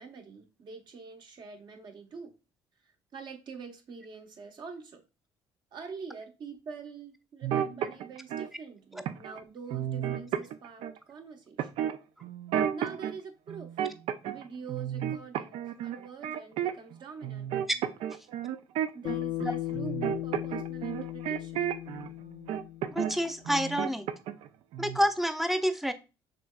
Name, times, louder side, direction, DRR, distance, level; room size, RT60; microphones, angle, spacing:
voice 1, 0.0-2.3 2.8-5.0 5.7-11.8 12.7-13.8 14.2-17.6 18.9-21.6, right 5 dB, 55° right, 1.1 m, -45 dB
sound 1, 7.4-8.5 9.1-9.4 9.7-11.0 11.6-13.1 13.5-14.4 14.7-16.9 17.2-22.1 22.5-23.2 23.4-24.5 24.7-25.0, right 10 dB, 75° right, 0.4 m, -32 dB
Bass guitar, 19.0-23.5, left 15 dB, 85° left, 0.6 m, -37 dB
voice 2, 22.9-24.1 24.8-25.9, equal, ahead, 0.6 m, -28 dB
6.0 x 3.2 x 2.2 m
cardioid pair, 85°, 10 cm